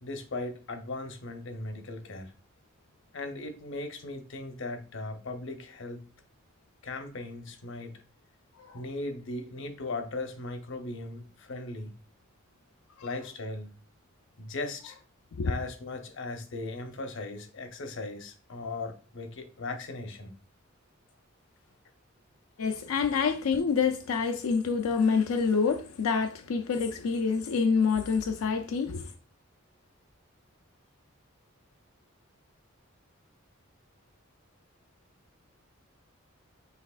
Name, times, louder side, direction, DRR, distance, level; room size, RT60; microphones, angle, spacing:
voice 1, 0.0-2.3 3.1-6.1 6.8-8.0 8.7-11.9 13.0-13.7 14.4-15.0 15.4-20.3, left 2 dB, 60° left, 0.7 m, -38 dB
voice 2, 22.6-29.1, left 5 dB, 90° left, 0.4 m, -27 dB
5.7 x 3.4 x 2.3 m
head